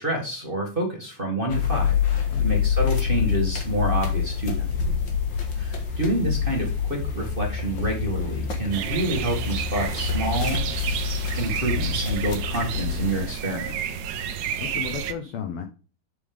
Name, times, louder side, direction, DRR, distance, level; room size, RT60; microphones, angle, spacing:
voice 1, 0.0-4.7 5.5-10.6 11.4-13.8, right 2 dB, 20° right, 0 dB, 1.7 m, -28 dB
sound 1, 1.5-13.3, left 7 dB, 45° left, 2.0 m, -26 dB
sound 2, 8.7-15.1, right 9 dB, 70° right, 2.0 m, -31 dB
voice 2, 14.1-15.6, left 8 dB, 70° left, 6 dB, 1.4 m, -35 dB
7.6 x 7.0 x 3.5 m, 0.36 s
omnidirectional pair, 3.6 m